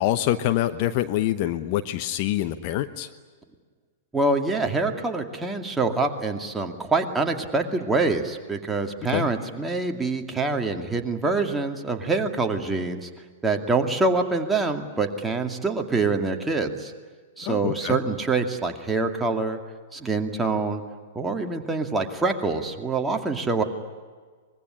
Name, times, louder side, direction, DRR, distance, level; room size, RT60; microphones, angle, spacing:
voice 1, 0.0-3.1 9.1-9.3 17.4-18.0, left 13 dB, 45° left, 10 dB, 1.0 m, -25 dB
voice 2, 4.1-13.1 13.4-16.9 17.4-19.6 19.9-20.8 21.2-23.6, right 3 dB, 10° right, 3 dB, 2.4 m, -25 dB
25.0 x 22.0 x 9.9 m, 1.5 s
figure-of-eight pair, 105°, 0 cm